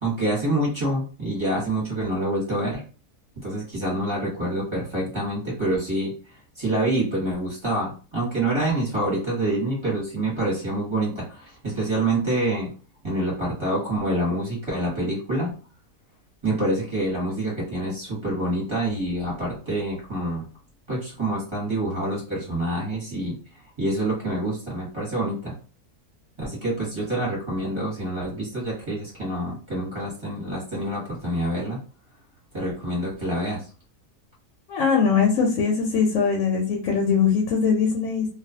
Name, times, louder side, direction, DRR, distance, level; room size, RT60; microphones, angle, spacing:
voice 1, 0.0-2.8 3.4-6.1 6.6-12.7 13.0-15.5 16.4-20.5 20.9-23.4 23.8-25.5 26.4-31.8 32.5-33.6, right 1 dB, 20° right, -6 dB, 0.9 m, -26 dB
voice 2, 34.7-38.3, left 6 dB, 65° left, -1 dB, 0.9 m, -21 dB
2.4 x 2.3 x 2.6 m, 0.37 s
omnidirectional pair, 1.6 m